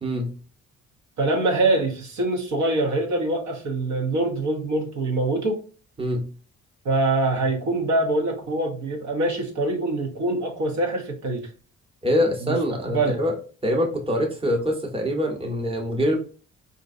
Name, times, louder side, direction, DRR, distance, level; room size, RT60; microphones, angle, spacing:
voice 1, 1.2-5.6 6.8-11.5 12.4-12.6 12.9-13.2, right 2 dB, 70° right, 1 dB, 1.0 m, -24 dB
voice 2, 12.0-13.3 13.6-16.2, equal, 20° right, 1 dB, 1.0 m, -24 dB
3.8 x 2.6 x 2.5 m, 0.39 s
cardioid pair, 90°, 30 cm